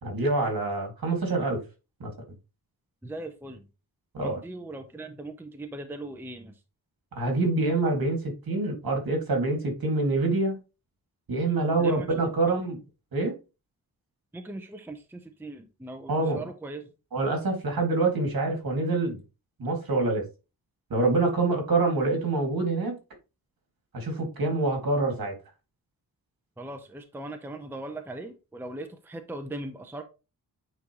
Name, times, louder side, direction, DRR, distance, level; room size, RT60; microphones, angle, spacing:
voice 1, 0.0-1.6 2.0-2.1 4.1-4.4 7.2-10.6 11.3-12.8 13.1-13.3 16.1-16.4 17.1-19.2 19.6-20.2 20.9-23.0 23.9-25.3, right 3 dB, 60° right, 2.2 m, -26 dB
voice 2, 3.0-3.6 4.2-6.5 11.8-12.1 14.3-16.8 26.6-30.0, right 2 dB, 5° right, 0.6 m, -39 dB
8.9 x 4.0 x 3.0 m
wide cardioid pair, 145°, 40 cm